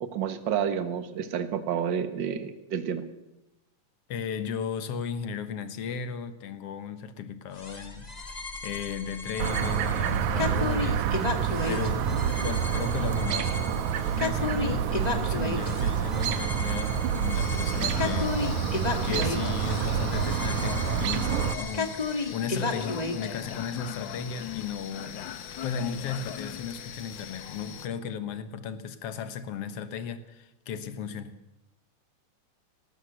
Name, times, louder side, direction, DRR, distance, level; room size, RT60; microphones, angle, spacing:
voice 1, 0.0-3.0, right 8 dB, 50° right, 1.6 m, -30 dB
voice 2, 4.1-8.1 8.6-11.1 11.7-18.6 19.0-25.3 25.6-31.4, left 6 dB, 60° left, 2.0 m, -35 dB
sound 1, 7.6-23.3, left 3 dB, 25° left, 0.9 m, -34 dB
Chirp tweet, 9.4-21.5, right 8 dB, 70° right, 2.3 m, -28 dB
sound 2, 17.3-27.9, left 9 dB, 85° left, 1.0 m, -39 dB
19.0 x 18.0 x 8.0 m
omnidirectional pair, 3.6 m